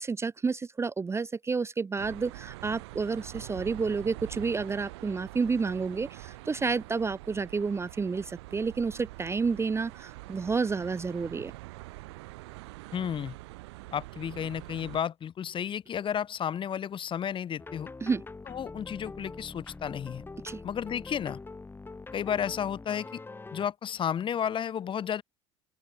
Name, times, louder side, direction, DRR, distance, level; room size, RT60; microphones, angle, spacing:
voice 1, 0.0-11.5 18.0-18.2 20.4-20.6, right 4 dB, 20° right, 0.6 m, -30 dB
sound 1, 2.0-15.0, right 22 dB, 70° right, 2.0 m, -45 dB
voice 2, 12.9-13.3 13.9-17.9 18.5-20.2 20.6-21.4 22.1-23.2 23.5-25.2, left 8 dB, 35° left, 1.1 m, -32 dB
sound 2, 17.6-23.7, left 3 dB, 15° left, 1.6 m, -44 dB
open air
hypercardioid pair, 70°, 14 cm